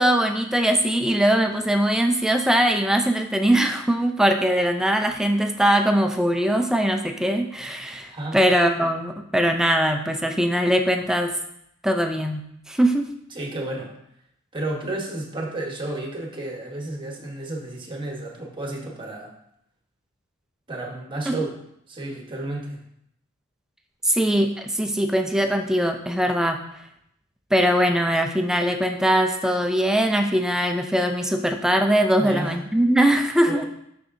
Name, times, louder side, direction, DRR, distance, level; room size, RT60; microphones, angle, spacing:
voice 1, 0.0-11.4 11.8-12.4 12.7-13.1 21.3-21.4 24.0-26.6 27.5-33.7, right 1 dB, 5° right, 5 dB, 0.4 m, -21 dB
voice 2, 13.3-14.0 14.5-19.3 20.7-21.6 21.9-22.8 32.2-32.6 33.4-33.7, right 2 dB, 25° right, 0 dB, 1.1 m, -32 dB
6.3 x 6.0 x 2.6 m, 0.75 s
head